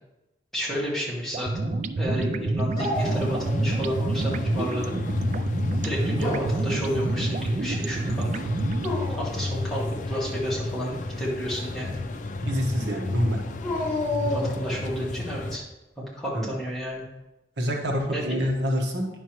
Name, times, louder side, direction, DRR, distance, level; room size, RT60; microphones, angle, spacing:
voice 1, 0.5-5.0 5.8-8.5 9.1-12.0 14.2-15.6 16.1-17.0 18.1-18.4, equal, ahead, -6 dB, 2.1 m, -31 dB
sound 1, 1.3-9.0, right 2 dB, 40° right, 0.3 m, -28 dB
Dog, 2.8-3.9 4.3-5.0 6.0-6.8 8.7-9.4 13.6-14.9, left 2 dB, 30° left, 2.5 m, -31 dB
sound 2, 2.9-15.6, left 2 dB, 45° left, 0.5 m, -32 dB
voice 2, 12.4-13.4 16.3-16.5 17.6-19.1, equal, 75° right, 0 dB, 1.3 m, -26 dB
9.7 x 6.6 x 3.1 m, 0.97 s
head